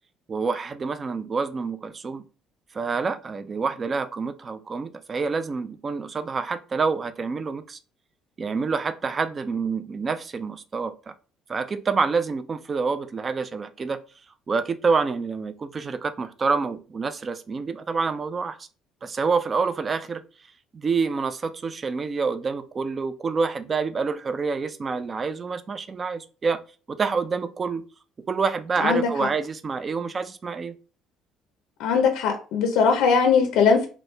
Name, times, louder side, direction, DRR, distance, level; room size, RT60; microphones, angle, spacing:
voice 1, 0.3-2.2 2.7-7.8 8.4-11.1 11.5-14.0 14.5-18.6 19.0-20.2 20.7-26.6 26.9-27.8 28.3-30.7, right 4 dB, 25° right, 0.3 m, -27 dB
voice 2, 28.8-29.3 31.8-33.9, left 5 dB, 80° left, 0.5 m, -20 dB
3.0 x 2.6 x 3.2 m
cardioid pair, 145°, 0 cm